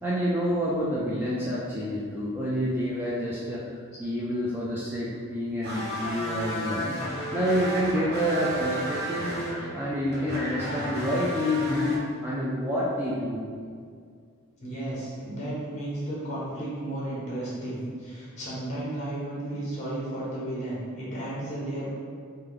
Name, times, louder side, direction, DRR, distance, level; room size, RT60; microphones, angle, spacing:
voice 1, 0.0-7.0 7.3-9.4 9.7-13.4, equal, 10° right, -7 dB, 0.4 m, -28 dB
sound 1, 5.6-12.0, equal, 50° right, 0.9 m, -33 dB
voice 2, 14.6-21.9, right 1 dB, 35° left, -7 dB, 1.3 m, -33 dB
3.4 x 3.2 x 3.7 m, 2.1 s
head